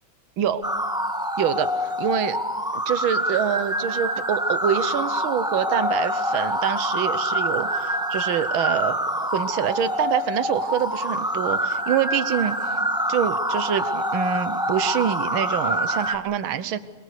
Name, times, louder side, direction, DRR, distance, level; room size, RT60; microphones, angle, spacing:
sound 1, 0.6-16.2, equal, 5° right, 1.1 m, -26 dB
voice 1, 1.4-2.4 2.7-12.6 13.1-16.8, right 9 dB, 85° right, 13 dB, 1.7 m, -26 dB
27.0 x 22.0 x 6.8 m, 1.4 s
omnidirectional pair, 2.2 m